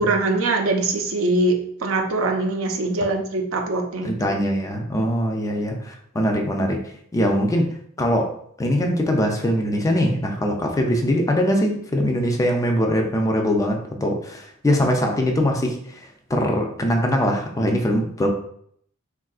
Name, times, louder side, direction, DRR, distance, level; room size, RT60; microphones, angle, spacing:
voice 1, 0.0-4.1, right 2 dB, 70° right, 3 dB, 0.5 m, -22 dB
voice 2, 4.0-6.8 7.1-8.3 8.6-18.3, equal, 15° left, 2 dB, 0.3 m, -22 dB
3.5 x 2.4 x 2.3 m, 0.67 s
head